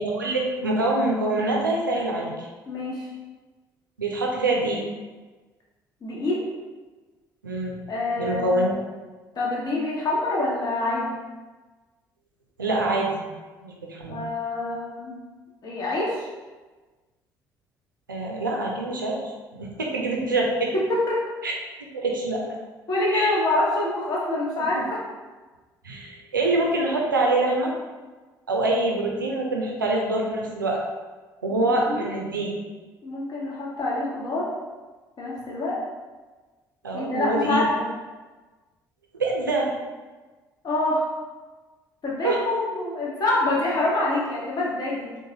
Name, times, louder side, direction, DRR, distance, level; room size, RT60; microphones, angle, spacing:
voice 1, 0.0-2.5 4.0-4.8 7.4-7.8 8.2-8.8 12.6-13.3 13.6-14.2 18.1-20.7 21.4-21.5 21.9-22.4 23.1-23.3 25.8-27.7 28.5-30.8 31.4-32.5 36.8-37.7 39.1-39.7 42.2-42.4, right 2 dB, 85° right, -1 dB, 0.4 m, -25 dB
voice 2, 2.7-3.1 6.0-6.4 7.9-8.7 9.3-11.2 14.1-15.2 15.6-16.2 20.9-21.2 22.9-25.0 31.5-32.1 33.0-34.5 35.2-35.8 36.9-37.9 40.6-41.0 42.0-45.1, left 2 dB, 40° left, -4 dB, 1.1 m, -26 dB
3.8 x 2.4 x 2.8 m, 1.3 s
figure-of-eight pair, 50°, 11 cm